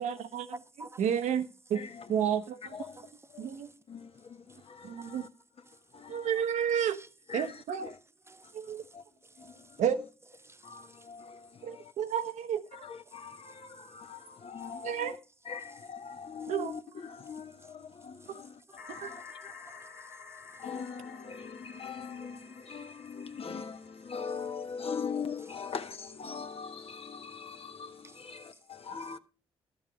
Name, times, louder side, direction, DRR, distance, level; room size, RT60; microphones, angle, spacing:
voice 1, 0.0-0.5 1.0-1.8 2.1-2.7 3.4-3.7 4.8-5.3 6.1-7.0 7.3-7.9 8.5-8.8 9.8-10.0 11.6-12.8 14.8-15.1 16.5-16.7 19.0-19.1, right 8 dB, 70° right, 0.9 m, -31 dB
voice 2, 0.5-1.0 2.8-3.7 5.0-5.2 5.7-5.8 6.9-7.1 8.3-9.0 9.2-9.8 10.4-11.1 13.4-13.6 14.0-14.1 14.6-14.7 16.4-16.5 17.6-17.7 18.2-20.6 28.0-28.2, right 2 dB, 20° right, 0.6 m, -53 dB
voice 3, 1.7-2.2 2.6-3.6 3.9-5.3 5.7-6.4 7.3-8.0 8.4-9.0 9.4-9.8 10.6-11.9 12.7-15.2 15.4-19.9 20.6-29.2, left 6 dB, 50° left, 1.2 m, -42 dB
sound 1, 18.8-24.5, left 5 dB, 80° left, 1.8 m, -51 dB
12.5 x 7.0 x 5.1 m
hypercardioid pair, 40°, 13 cm